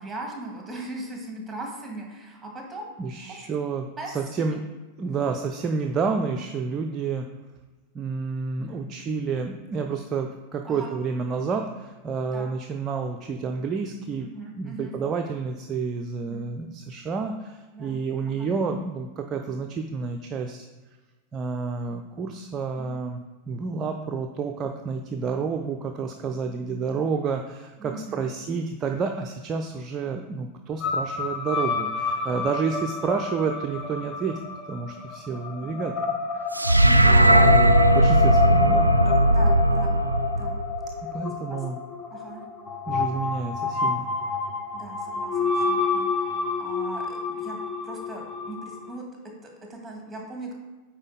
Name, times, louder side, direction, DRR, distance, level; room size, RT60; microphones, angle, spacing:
voice 1, 0.0-2.9 3.2-3.4 4.0-4.1 4.4-4.6 5.0-5.3 8.6-8.9 10.7-10.9 12.3-12.5 14.2-14.9 16.3-16.5 17.7-18.0 18.4-18.5 27.8-28.3 35.6-35.9 36.8-37.5 39.0-40.0 40.3-40.6 41.5-41.6 42.1-42.4 44.7-46.3 46.6-47.6 47.8-49.0 49.4-50.5, right 2 dB, 10° right, 0 dB, 1.9 m, -39 dB
voice 2, 3.0-3.9 4.1-4.6 5.0-7.3 7.9-14.3 14.6-20.7 21.3-23.2 23.5-34.4 34.7-36.1 37.0-38.9 41.1-41.8 42.9-44.1, right 5 dB, 25° right, 4 dB, 0.5 m, -29 dB
sound 1, 30.8-48.9, left 4 dB, 25° left, 0.8 m, -28 dB
sound 2, 36.5-40.9, right 1 dB, 85° right, 0.4 m, -18 dB
8.9 x 4.4 x 4.0 m, 1.2 s
figure-of-eight pair, 90°, 0 cm